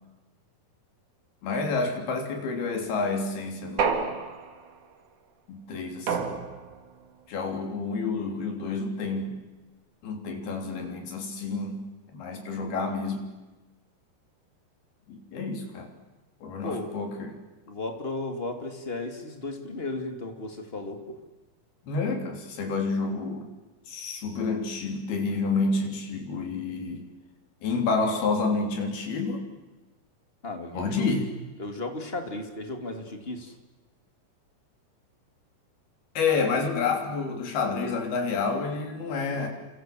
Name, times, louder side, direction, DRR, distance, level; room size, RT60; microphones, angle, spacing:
voice 1, 1.4-4.2 5.5-6.4 7.3-9.4 10.0-11.9 12.1-13.3 15.1-15.9 16.4-17.4 21.8-23.5 23.9-27.1 27.6-29.4 30.7-31.3 36.2-39.5, left 4 dB, 75° left, 4 dB, 5.5 m, -29 dB
sound 1, 3.8-4.8 6.1-6.9, right 5 dB, 55° right, 3.5 m, -29 dB
voice 2, 16.6-17.0 17.7-21.2 30.4-31.1 31.6-33.5, left 2 dB, 20° left, 5 dB, 2.3 m, -35 dB
29.5 x 26.0 x 7.7 m, 1.2 s
omnidirectional pair, 4.5 m